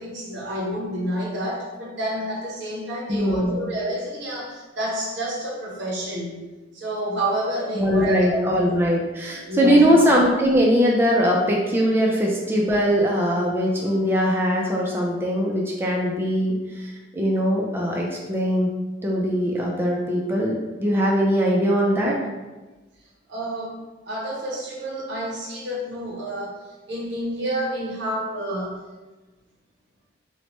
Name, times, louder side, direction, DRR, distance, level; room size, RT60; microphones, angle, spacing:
voice 1, 0.0-6.4 6.7-8.8 9.5-9.8 23.3-23.8 24.1-26.6 26.9-28.8, right 1 dB, 70° right, -3 dB, 0.7 m, -29 dB
voice 2, 3.1-3.7 7.7-18.7 19.0-22.2, equal, 10° right, -3 dB, 0.3 m, -21 dB
3.0 x 2.1 x 2.9 m, 1.2 s
head